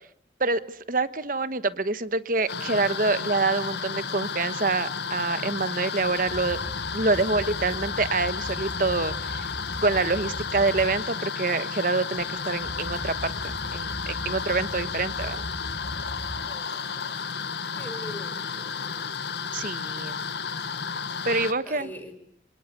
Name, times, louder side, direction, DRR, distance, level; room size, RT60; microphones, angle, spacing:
voice 1, 0.4-6.6 6.9-9.5 9.8-15.4 19.5-20.2 21.2-21.9, right 3 dB, 45° right, 13 dB, 1.2 m, -26 dB
sound 1, 2.5-21.5, left 5 dB, 65° left, 1.3 m, -32 dB
sound 2, 6.0-11.0 12.1-16.4, equal, 40° left, 2.4 m, -39 dB
voice 2, 16.5-16.9 17.7-19.2 21.6-22.1, equal, 10° left, 5 dB, 5.0 m, -42 dB
27.0 x 20.0 x 9.4 m, 0.70 s
head